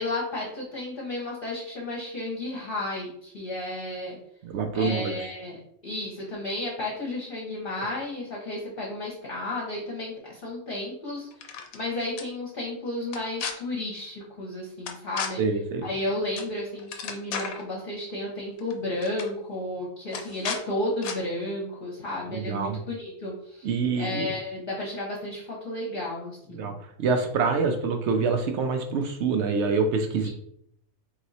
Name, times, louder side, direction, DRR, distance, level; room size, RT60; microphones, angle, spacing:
voice 1, 0.0-4.2 4.7-5.6 5.8-11.3 11.7-15.4 15.8-26.7 30.2-30.3, left 1 dB, 45° left, -4 dB, 1.1 m, -33 dB
voice 2, 4.4-5.1 15.4-15.9 22.3-22.8 23.6-24.3 26.5-26.7 27.0-30.3, right 4 dB, 65° right, 5 dB, 0.7 m, -26 dB
sound 1, 11.3-11.8 12.2-12.3 13.1-13.5 14.9-15.3 16.4-16.5 16.8-17.6 18.6-18.7 19.0-19.3 20.1-20.6 21.0-21.2, left 6 dB, 80° left, 1.1 m, -33 dB
3.6 x 2.9 x 4.0 m, 0.70 s
omnidirectional pair, 1.4 m